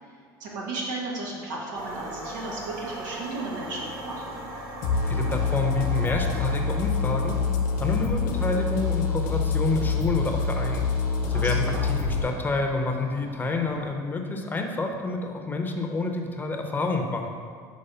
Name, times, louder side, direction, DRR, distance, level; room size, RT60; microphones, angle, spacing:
voice 1, 0.4-4.4 11.3-11.9, right 2 dB, 90° right, -3 dB, 1.3 m, -34 dB
sound 1, 1.7-13.9, right 1 dB, 65° right, 1.2 m, -41 dB
sound 2, 4.8-12.2, left 4 dB, 80° left, 0.9 m, -26 dB
voice 2, 5.0-7.4 7.8-10.9 11.3-17.3, left 3 dB, 20° left, 3 dB, 0.7 m, -28 dB
5.5 x 3.2 x 5.5 m, 2.1 s
supercardioid pair, 95°, 10 cm